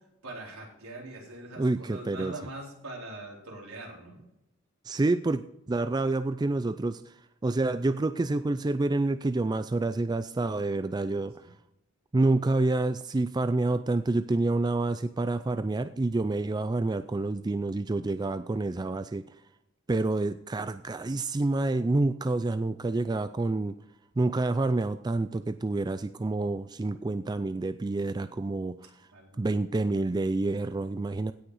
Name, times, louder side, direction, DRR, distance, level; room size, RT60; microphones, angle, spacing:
voice 1, 0.2-4.2 11.4-11.5 29.1-29.6, right 2 dB, 80° right, -2 dB, 4.3 m, -42 dB
voice 2, 1.6-2.3 4.8-5.4 5.7-7.1 7.4-11.3 12.1-19.2 19.9-23.7 24.2-28.8 29.4-31.3, right 2 dB, 20° right, 12 dB, 0.3 m, -28 dB
16.5 x 6.3 x 4.9 m, 0.83 s
head